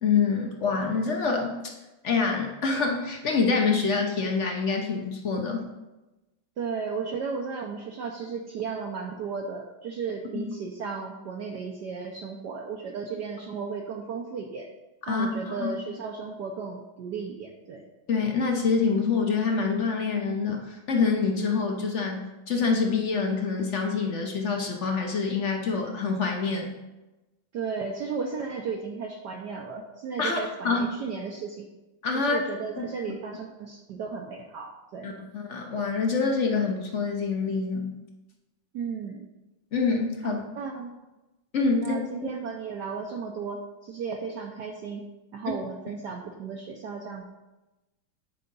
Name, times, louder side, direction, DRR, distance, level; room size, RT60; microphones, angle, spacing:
voice 1, 0.0-1.7 2.0-5.7 10.3-10.5 15.1-15.3 15.6-15.7 18.1-22.2 22.5-26.7 30.2-30.8 32.0-32.5 32.8-32.9 35.0-37.9 39.7-40.4 41.5-42.0, left 4 dB, 50° left, 2 dB, 0.9 m, -26 dB
voice 2, 6.6-14.7 15.1-17.8 27.5-31.7 32.1-35.1 38.7-39.3 40.2-40.9 41.8-45.0 45.3-47.3, right 5 dB, 65° right, 0 dB, 1.2 m, -34 dB
9.4 x 4.9 x 5.3 m, 1.1 s
omnidirectional pair, 2.3 m